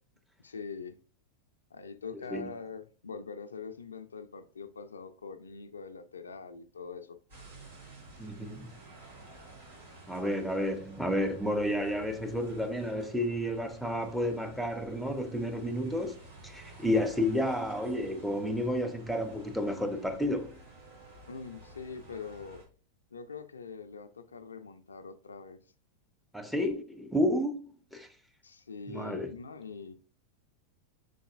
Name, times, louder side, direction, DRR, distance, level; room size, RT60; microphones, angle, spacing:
voice 1, 0.4-1.0 1.7-7.2 21.3-22.6 23.1-25.6 28.4-30.0, left 5 dB, 90° left, 0.4 m, -43 dB
sound 1, 7.3-22.6, right 2 dB, 75° right, 2.2 m, -52 dB
voice 2, 8.2-8.7 10.1-16.2 16.4-20.6 26.3-27.6 27.9-28.1 28.9-29.3, left 1 dB, ahead, 0.7 m, -31 dB
5.2 x 3.9 x 2.4 m
hypercardioid pair, 95°, 0 cm